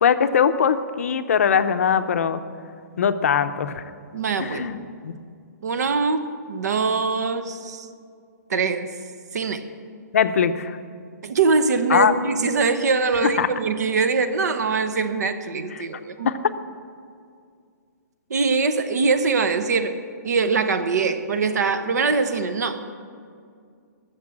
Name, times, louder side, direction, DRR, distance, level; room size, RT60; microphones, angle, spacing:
voice 1, 0.0-2.4 3.0-3.8 4.4-4.8 5.0-5.1 10.1-10.8 11.9-12.1 13.2-13.5 16.2-16.4, left 7 dB, 50° left, 10 dB, 0.6 m, -21 dB
voice 2, 4.1-4.7 5.6-7.9 8.5-8.9 9.3-9.6 11.2-16.3 18.3-20.0 20.2-22.8, right 4 dB, 65° right, 11 dB, 1.0 m, -23 dB
13.5 x 6.7 x 8.6 m, 2.3 s
hypercardioid pair, 175°, 10 cm